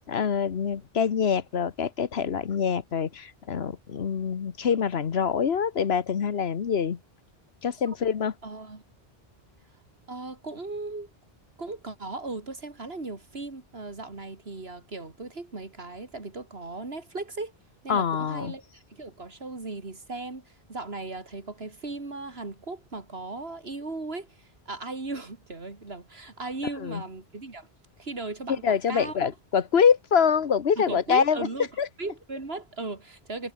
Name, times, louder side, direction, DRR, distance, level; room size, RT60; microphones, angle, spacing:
voice 1, 0.1-7.0 7.6-8.3 17.9-18.5 26.8-27.0 28.5-31.5 31.8-31.9, left 7 dB, 75° left, 1.3 m, -25 dB
voice 2, 8.4-8.8 10.1-11.1 11.6-17.5 17.8-27.7 28.0-29.3 30.8-31.7 32.0-33.5, right 3 dB, 75° right, 3.3 m, -37 dB
omnidirectional pair, 1.1 m